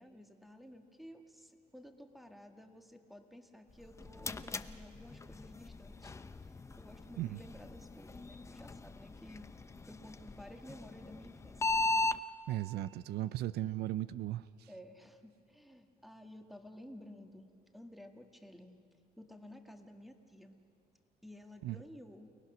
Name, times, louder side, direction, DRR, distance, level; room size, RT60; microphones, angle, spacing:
voice 1, 0.0-6.1 6.4-9.5 9.9-11.8 14.7-18.8 19.2-20.6 21.2-22.3, left 1 dB, ahead, 4 dB, 1.7 m, -54 dB
sound 1, 3.7-12.2, left 2 dB, 15° left, 0.7 m, -39 dB
voice 2, 12.5-14.7 21.6-21.8, right 14 dB, 70° right, 16 dB, 0.5 m, -37 dB
29.5 x 19.0 x 6.1 m, 2.5 s
cardioid pair, 110°, 17 cm